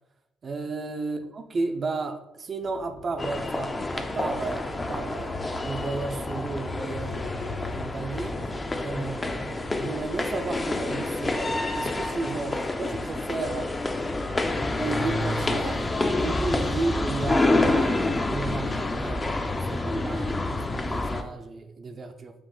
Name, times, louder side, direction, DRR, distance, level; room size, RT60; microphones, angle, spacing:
voice 1, 0.4-8.4 8.8-13.7 14.8-19.3 19.6-22.3, right 3 dB, 45° right, 6 dB, 0.4 m, -33 dB
sound 1, 2.6-11.4, left 3 dB, 60° left, 0.8 m, -42 dB
sound 2, 3.2-21.2, left 2 dB, 25° left, 0.4 m, -28 dB
4.8 x 2.5 x 3.8 m, 0.90 s
cardioid pair, 90°, 0 cm